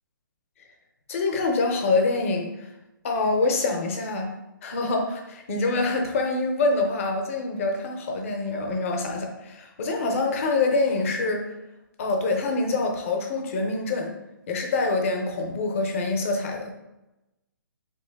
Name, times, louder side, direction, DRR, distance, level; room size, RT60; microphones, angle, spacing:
voice 1, 1.1-2.7 3.0-4.3 4.6-11.4 12.0-14.1 14.5-16.7, left 3 dB, 40° left, 3 dB, 0.7 m, -25 dB
3.8 x 3.0 x 3.4 m, 0.96 s
hypercardioid pair, 165°, 12 cm